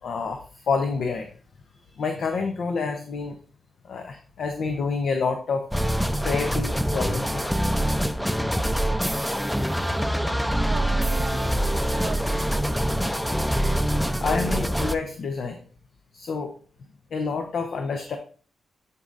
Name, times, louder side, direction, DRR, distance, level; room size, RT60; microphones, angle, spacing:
voice 1, 0.0-1.3 1.7-3.4 3.8-5.7 6.2-7.6 14.2-15.6 16.1-16.5 17.1-18.2, left 4 dB, 70° left, 4 dB, 0.7 m, -28 dB
sound 1, 5.7-15.0, equal, ahead, 0.5 m, -24 dB
voice 2, 9.8-11.6 11.9-12.8, right 4 dB, 65° right, 4 dB, 0.7 m, -39 dB
10.5 x 4.1 x 2.5 m, 0.42 s
supercardioid pair, 45°, 0 cm